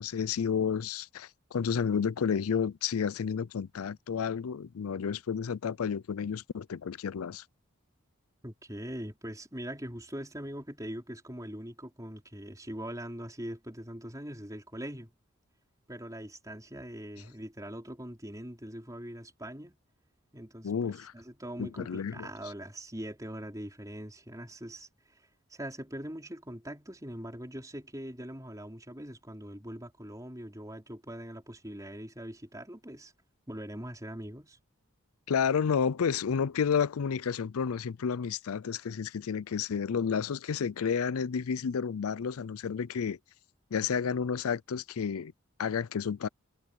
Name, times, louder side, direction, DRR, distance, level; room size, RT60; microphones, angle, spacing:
voice 1, 0.0-7.4 20.6-21.1 21.6-22.3 35.3-43.2 43.7-45.3 45.6-46.3, left 6 dB, 80° left, 0.5 m, -31 dB
voice 2, 8.4-15.1 15.9-19.8 20.3-33.1 33.5-34.6, right 1 dB, 15° right, 4.0 m, -42 dB
head